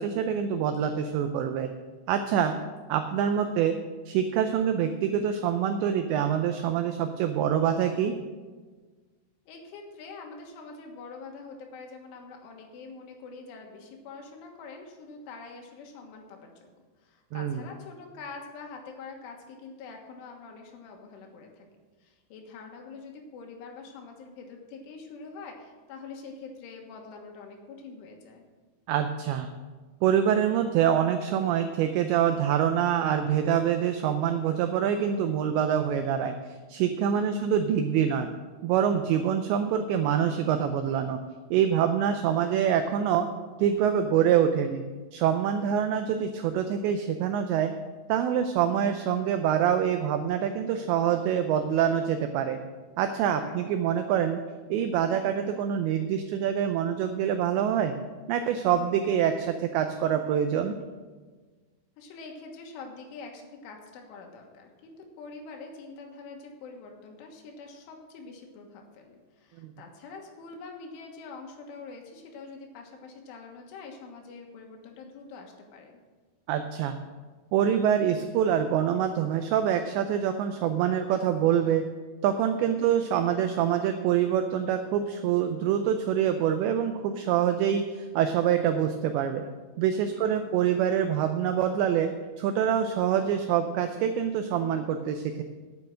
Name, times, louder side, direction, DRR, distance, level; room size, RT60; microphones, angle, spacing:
voice 1, 0.0-1.7 2.1-2.5 2.9-3.8 4.1-8.1 17.3-17.6 28.9-29.5 30.0-38.3 38.6-41.2 41.5-43.3 43.6-44.8 45.1-47.7 48.1-52.6 53.0-54.4 54.7-58.0 58.3-60.8 69.6-69.7 76.5-77.0 77.5-81.9 82.2-89.4 89.8-92.1 92.4-95.4, right 9 dB, 90° right, 7 dB, 2.5 m, -25 dB
voice 2, 9.5-16.7 17.0-21.7 22.0-28.4 37.1-37.4 45.6-45.8 53.3-53.6 62.0-76.0 82.7-82.9 90.2-90.5, left 4 dB, 75° left, 2 dB, 3.8 m, -45 dB
10.5 x 8.9 x 6.4 m, 1.4 s
omnidirectional pair, 5.9 m